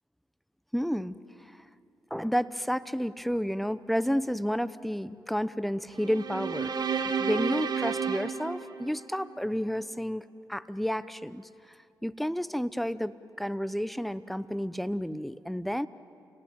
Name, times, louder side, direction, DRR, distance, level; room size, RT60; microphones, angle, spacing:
voice 1, 0.7-1.6 2.1-6.8 7.2-11.8 12.0-15.9, equal, ahead, 15 dB, 0.9 m, -31 dB
sound 1, 6.0-9.4, right 6 dB, 60° right, 1.8 m, -31 dB
29.0 x 18.5 x 9.1 m, 2.5 s
supercardioid pair, 50°, 8 cm